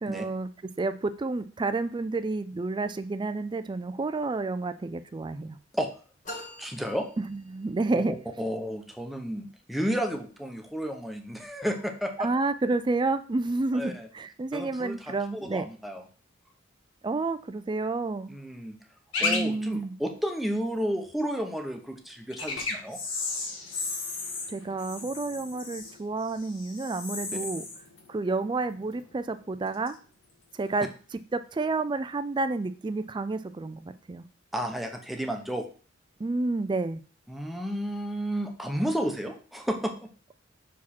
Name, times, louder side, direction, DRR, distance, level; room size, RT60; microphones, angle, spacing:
voice 1, 0.0-0.5 0.8-5.6 7.3-8.1 12.2-15.6 17.0-18.3 19.2-19.9 24.5-27.6 28.1-30.0 30.5-30.9 31.3-34.2 36.2-37.0, right 3 dB, 25° right, 11 dB, 0.4 m, -30 dB
sound 1, 6.2-7.9, left 1 dB, 40° left, 1.4 m, -44 dB
voice 2, 6.6-7.1 7.9-12.3 13.7-14.1 14.5-16.0 18.3-18.8 19.2-23.0 34.5-35.6 37.3-39.9, equal, ahead, 3 dB, 0.9 m, -32 dB
sound 2, 19.1-19.4 19.7-19.8 22.3-29.2 29.4-29.9 30.6-30.8, left 3 dB, 90° left, 1.7 m, -34 dB
6.1 x 4.8 x 4.2 m, 0.39 s
head